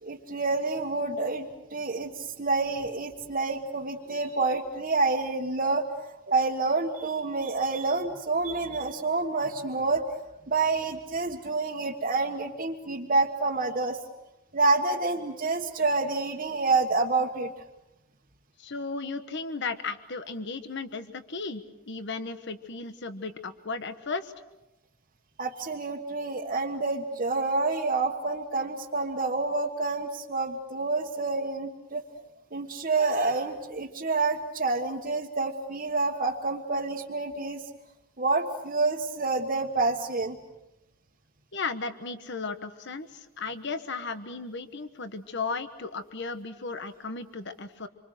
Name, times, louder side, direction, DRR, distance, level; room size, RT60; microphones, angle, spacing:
voice 1, 0.0-10.0 10.5-14.0 14.5-17.5 25.4-32.0 32.5-37.6 38.2-40.4, right 3 dB, 40° right, -2 dB, 1.4 m, -28 dB
voice 2, 18.6-24.3 41.5-47.9, left 4 dB, 55° left, 10 dB, 1.2 m, -35 dB
27.0 x 25.5 x 6.5 m, 0.96 s
head